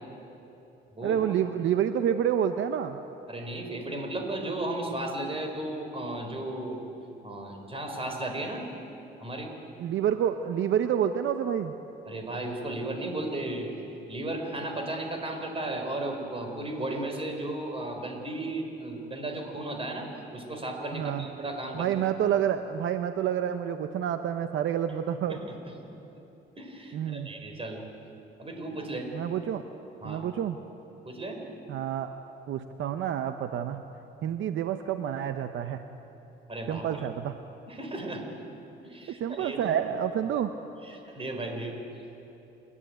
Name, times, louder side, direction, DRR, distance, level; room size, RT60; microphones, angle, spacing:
voice 1, 1.0-3.0 9.8-11.7 20.9-21.2 21.7-25.4 26.9-27.3 29.1-29.6 30.0-30.6 31.7-32.1 32.5-33.8 34.2-35.8 36.7-37.4 39.2-40.5, right 9 dB, 75° right, 8 dB, 0.8 m, -28 dB
voice 2, 3.3-6.8 7.2-8.7 9.2-9.5 12.1-13.7 14.1-21.9 25.3-25.5 26.6-27.9 28.4-29.1 30.0-30.2 31.0-31.4 36.5-37.0 37.7-38.3 38.8-39.7 40.8-41.8, right 1 dB, 30° right, 3 dB, 4.5 m, -35 dB
28.5 x 11.0 x 9.2 m, 3.0 s
cardioid pair, 90°, 20 cm